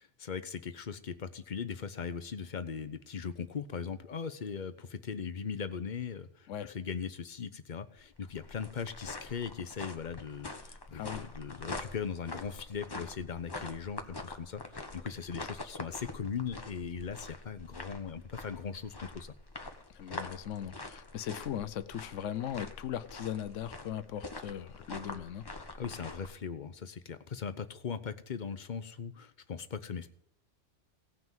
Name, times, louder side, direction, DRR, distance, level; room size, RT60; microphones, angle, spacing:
voice 1, 0.0-19.3 25.8-30.1, left 6 dB, 45° left, 11 dB, 0.9 m, -39 dB
sound 1, 8.0-26.3, left 2 dB, 20° left, 1.0 m, -45 dB
voice 2, 10.9-11.2 19.9-25.5, left 10 dB, 90° left, 14 dB, 1.0 m, -38 dB
17.5 x 6.0 x 7.3 m, 0.76 s
omnidirectional pair, 1.2 m